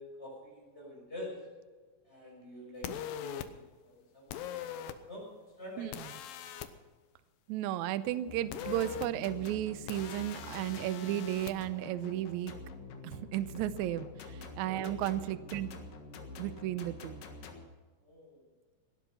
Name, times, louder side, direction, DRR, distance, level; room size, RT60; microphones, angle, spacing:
voice 1, 0.0-1.4 2.0-4.5 5.0-5.3 5.6-6.1 14.8-15.0 18.0-18.5, left 1 dB, 15° left, -3 dB, 6.5 m, -46 dB
sound 1, 2.8-3.5 4.3-5.0 5.9-6.7 8.5-9.1 9.9-11.5, left 10 dB, 90° left, 2.6 m, -41 dB
voice 2, 7.5-12.5 13.0-14.1 14.6-15.7 16.4-17.2, right 13 dB, 75° right, 14 dB, 1.8 m, -34 dB
sound 2, 8.3-17.6, left 3 dB, 70° left, 3.2 m, -47 dB
18.0 x 11.5 x 5.7 m, 1.4 s
omnidirectional pair, 4.0 m